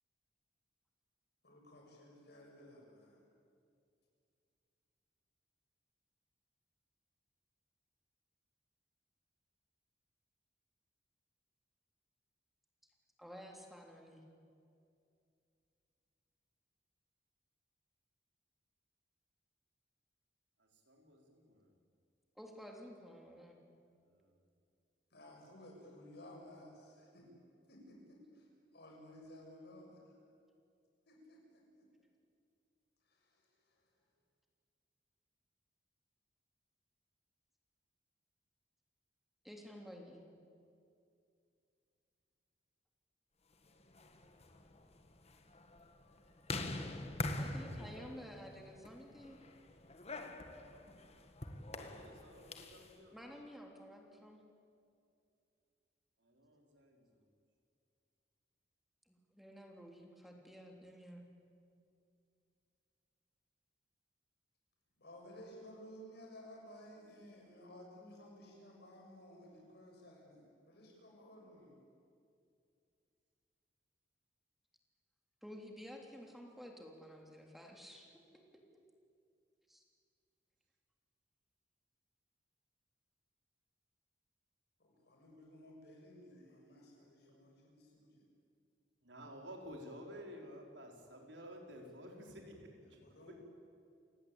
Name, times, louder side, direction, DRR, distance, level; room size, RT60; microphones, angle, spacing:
voice 1, 1.4-3.2 25.1-27.3 27.7-28.5 28.7-30.2 31.1-31.9 33.1-33.8 65.0-71.8 84.8-88.3 92.8-93.4, left 1 dB, 65° left, 0 dB, 7.1 m, -56 dB
voice 2, 13.2-14.2 22.4-23.6 39.4-40.2 47.3-49.4 53.1-54.4 59.1-61.2 75.4-78.2 78.5-78.6 79.7-79.8, equal, ahead, 1 dB, 3.3 m, -52 dB
voice 3, 20.6-21.7 51.7-53.2 56.2-57.1 89.0-93.0, equal, 85° right, 2 dB, 4.7 m, -52 dB
sound 1, 43.8-52.9, left 2 dB, 35° left, 1.9 m, -45 dB
29.0 x 18.5 x 8.7 m, 2.4 s
head